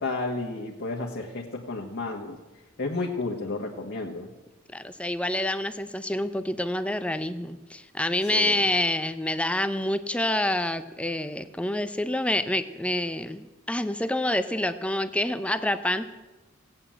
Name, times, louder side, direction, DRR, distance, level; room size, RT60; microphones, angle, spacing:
voice 1, 0.0-2.4 2.8-4.3 8.3-8.6, left 3 dB, 55° left, -1 dB, 1.6 m, -32 dB
voice 2, 4.7-16.1, left 1 dB, 5° left, 11 dB, 0.6 m, -27 dB
17.0 x 9.0 x 7.7 m, 1.1 s
head